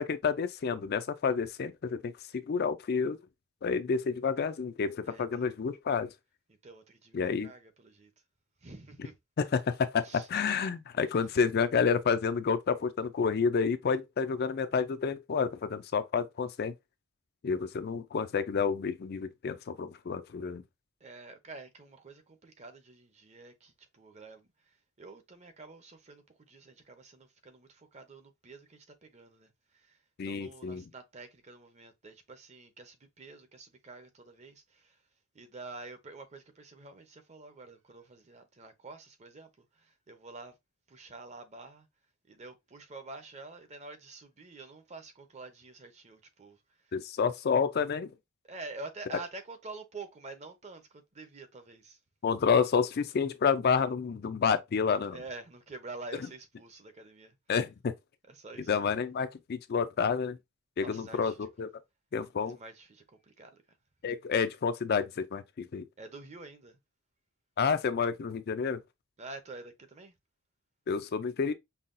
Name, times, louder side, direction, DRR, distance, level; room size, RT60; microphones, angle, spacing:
voice 1, 0.0-3.2 3.6-6.1 7.1-7.5 9.4-16.7 17.4-20.6 30.2-30.8 46.9-48.1 52.2-55.2 57.5-57.9 58.7-60.4 60.8-61.7 62.1-62.6 64.0-65.8 67.6-68.8 70.9-71.5, left 5 dB, 45° left, 0.4 m, -29 dB
voice 2, 5.0-5.5 6.6-8.1 8.6-9.1 10.0-10.3 11.0-11.3 21.0-35.0 35.3-40.5 40.9-41.9 42.3-47.0 48.5-52.0 55.1-57.4 58.3-59.0 60.8-61.5 62.4-63.6 66.0-66.8 69.2-70.1, right 3 dB, 30° right, 0.7 m, -48 dB
5.5 x 2.3 x 2.5 m
head